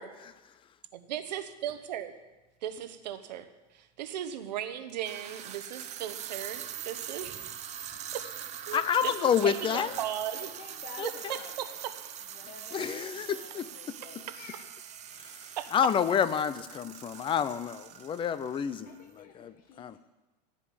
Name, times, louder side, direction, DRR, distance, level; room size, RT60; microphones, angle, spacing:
voice 1, 1.1-2.1 2.6-3.5 3.7-7.4 8.1-8.2 8.7-10.5 11.3-11.7 15.6-15.7, right 10 dB, 90° right, 10 dB, 1.1 m, -37 dB
sound 1, 1.7-1.8 2.8-2.9 4.9-19.0, right 9 dB, 35° right, 0.9 m, -43 dB
voice 2, 8.7-9.9 11.0-11.4 12.7-13.7 15.1-20.0, left 8 dB, 25° left, 15 dB, 0.6 m, -29 dB
voice 3, 9.7-10.1 10.3-11.8 12.3-14.7 18.8-20.0, left 6 dB, 45° left, 3 dB, 1.3 m, -50 dB
16.0 x 5.3 x 8.6 m, 1.1 s
supercardioid pair, 125°, 21 cm